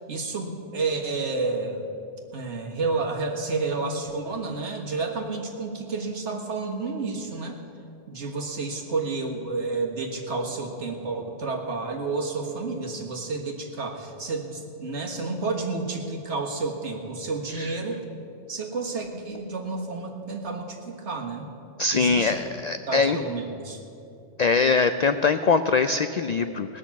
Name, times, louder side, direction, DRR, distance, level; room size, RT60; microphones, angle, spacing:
voice 1, 0.1-1.8 2.3-7.6 8.1-18.0 18.5-21.5 21.9-22.4 22.9-23.8, right 3 dB, 65° right, 1 dB, 1.9 m, -30 dB
voice 2, 21.8-23.2 24.4-26.8, left 4 dB, 80° left, 10 dB, 0.3 m, -22 dB
19.0 x 6.4 x 8.4 m, 2.7 s
omnidirectional pair, 1.3 m